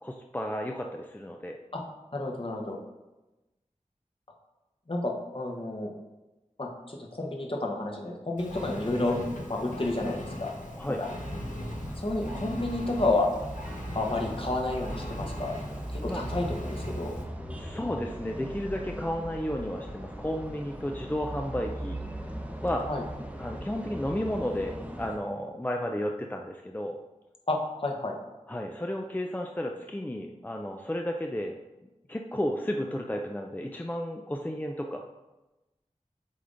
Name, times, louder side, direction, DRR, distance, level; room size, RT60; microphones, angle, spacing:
voice 1, 0.0-1.6 10.8-11.0 16.0-16.2 17.4-22.0 22.6-22.9 23.4-27.0 28.5-31.5 32.1-35.0, equal, 15° left, 2 dB, 0.5 m, -33 dB
voice 2, 2.1-2.8 4.9-5.9 6.6-9.2 9.5-10.5 11.0-11.1 12.0-13.3 13.9-15.6 15.9-17.2 22.9-23.0 27.5-28.2, left 2 dB, 45° left, 0 dB, 1.1 m, -30 dB
Engine, 8.4-17.2, left 1 dB, 85° left, 0.9 m, -40 dB
sound 1, 11.2-25.2, right 1 dB, 10° right, 0.8 m, -39 dB
7.7 x 3.7 x 3.8 m, 1.1 s
wide cardioid pair, 45°, 13 cm